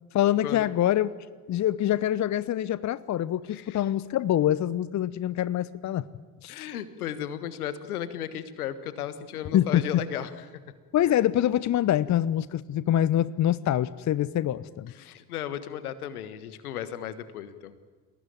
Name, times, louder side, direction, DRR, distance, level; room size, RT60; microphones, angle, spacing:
voice 1, 0.1-1.1 1.5-6.0 6.4-6.5 9.5-10.0 10.9-14.9, left 12 dB, 40° left, 18 dB, 0.9 m, -25 dB
voice 2, 3.5-3.8 6.5-10.4 14.9-17.7, left 10 dB, 75° left, 14 dB, 1.5 m, -35 dB
29.0 x 18.5 x 9.4 m, 1.4 s
figure-of-eight pair, 50°, 45 cm